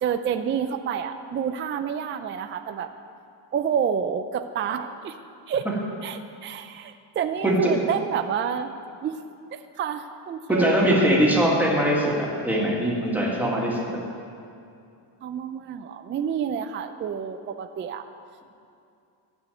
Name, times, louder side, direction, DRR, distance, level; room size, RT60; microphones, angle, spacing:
voice 1, 0.0-2.9 3.5-5.2 5.5-5.7 6.0-8.7 9.0-9.2 9.5-10.7 13.7-13.8 15.2-18.0, right 8 dB, 30° right, 8 dB, 0.3 m, -29 dB
voice 2, 7.4-7.8 10.5-14.0, equal, 5° right, -4 dB, 1.9 m, -22 dB
12.5 x 6.3 x 8.9 m, 2.5 s
cardioid pair, 160°, 43 cm